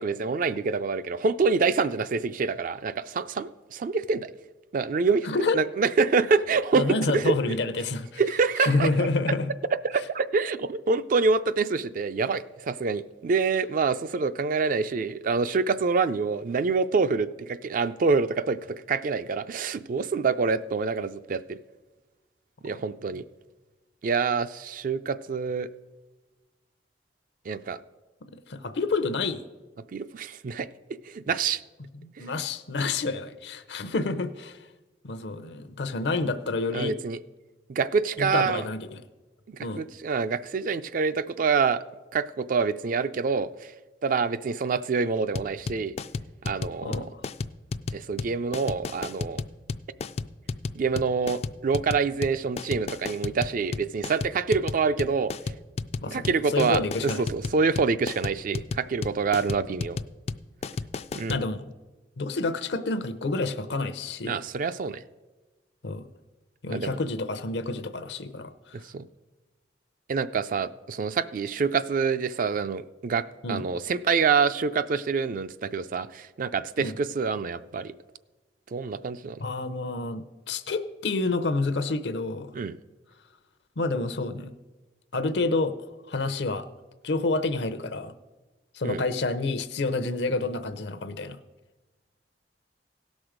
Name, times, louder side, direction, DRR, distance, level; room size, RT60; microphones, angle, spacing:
voice 1, 0.0-4.3 4.7-5.3 5.5-7.3 8.2-8.9 9.8-21.6 22.6-23.2 24.0-25.7 27.5-27.8 29.9-30.7 31.1-31.6 32.2-32.3 36.7-37.2 37.7-38.7 39.5-41.8 42.1-43.7 44.0-45.9 46.4-47.1 47.9-49.4 50.7-55.3 56.1-60.0 61.1-61.4 64.2-65.0 66.7-67.0 68.8-69.0 70.1-77.9 78.7-79.4 82.5-82.7 88.8-89.0, right 5 dB, 50° right, 13 dB, 0.4 m, -26 dB
voice 2, 5.2-5.6 6.7-8.2 8.6-9.5 22.7-22.8 28.3-29.4 31.3-31.4 32.0-34.6 35.0-36.9 38.2-39.0 39.6-39.8 46.8-47.2 56.0-57.3 61.3-61.6 62.2-64.4 65.8-66.0 66.6-68.8 73.4-73.7 76.8-77.0 79.4-82.6 83.8-84.5 85.1-85.7 86.1-86.7 87.0-88.1 88.7-91.4, left 3 dB, 75° left, 11 dB, 0.7 m, -28 dB
sound 1, 45.3-61.4, left 4 dB, 35° left, 0.3 m, -33 dB
17.0 x 6.2 x 5.0 m, 1.2 s
head